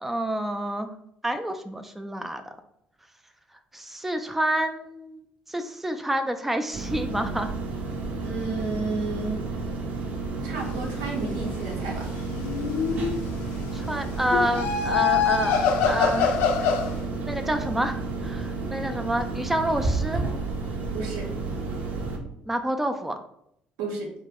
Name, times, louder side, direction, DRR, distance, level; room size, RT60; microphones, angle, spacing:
voice 1, 0.0-0.9 1.2-2.4 3.7-7.5 13.7-15.6 15.9-16.8 17.2-20.3 22.5-23.2, right 1 dB, 5° right, 7 dB, 0.3 m, -28 dB
sound 1, 6.7-22.2, right 3 dB, 55° right, 0.7 m, -31 dB
voice 2, 8.2-9.4 10.4-12.1 20.9-21.3 23.8-24.1, right 3 dB, 90° right, 0 dB, 0.7 m, -31 dB
sound 2, 12.3-13.3 14.3-16.9, left 7 dB, 80° left, 0.4 m, -24 dB
2.8 x 2.0 x 3.5 m, 0.74 s
supercardioid pair, 75°, 3 cm